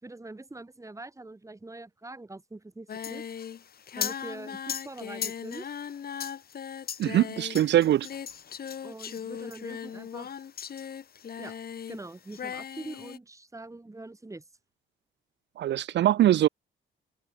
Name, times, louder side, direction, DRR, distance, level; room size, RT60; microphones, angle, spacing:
voice 1, 0.0-3.3 4.0-5.7 8.8-10.4 11.4-11.6 11.9-14.4, right 2 dB, 15° right, 6.0 m, -43 dB
Singing, 2.9-12.0 12.3-13.2, left 8 dB, 50° left, 2.4 m, -37 dB
voice 2, 7.0-8.1 15.6-16.5, right 12 dB, 65° right, 0.6 m, -22 dB
cardioid pair, 90°, 20 cm